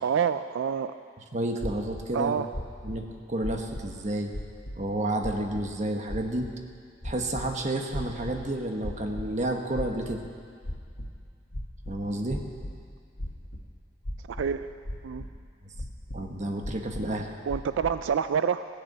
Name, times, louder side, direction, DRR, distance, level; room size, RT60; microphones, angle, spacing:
voice 1, 0.0-1.0 2.1-2.5 14.3-14.7 15.0-15.2 17.5-18.7, right 7 dB, 90° right, 11 dB, 0.4 m, -27 dB
voice 2, 1.3-2.3 2.8-4.3 4.7-6.5 7.0-10.2 11.9-12.4 16.1-17.3, right 1 dB, 40° right, 3 dB, 1.3 m, -30 dB
sound 1, 1.6-2.0 2.5-3.0 3.4-4.0 4.3-4.8 5.2-5.7 6.1-6.5 7.0-7.5 7.9-8.4 8.8-9.3 9.7-10.3 10.6-11.1 11.5-12.7 13.2-13.6 14.0-14.6 14.8-15.3 15.7-16.2 16.6-17.1 17.5-17.9, left 1 dB, 80° left, 1.7 m, -36 dB
16.5 x 6.8 x 8.8 m, 2.3 s
head